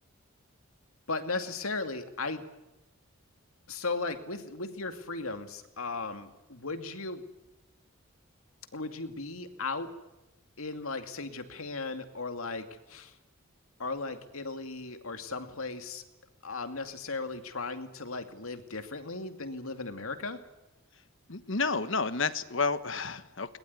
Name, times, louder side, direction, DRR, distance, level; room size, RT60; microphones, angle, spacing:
voice 1, 1.1-2.4 3.7-7.2 8.7-9.9 10.6-13.2 13.8-16.0 16.4-20.4, left 3 dB, 80° left, 8 dB, 2.4 m, -36 dB
voice 2, 21.3-23.6, left 4 dB, 60° left, 13 dB, 1.3 m, -30 dB
21.0 x 20.5 x 9.7 m, 0.96 s
head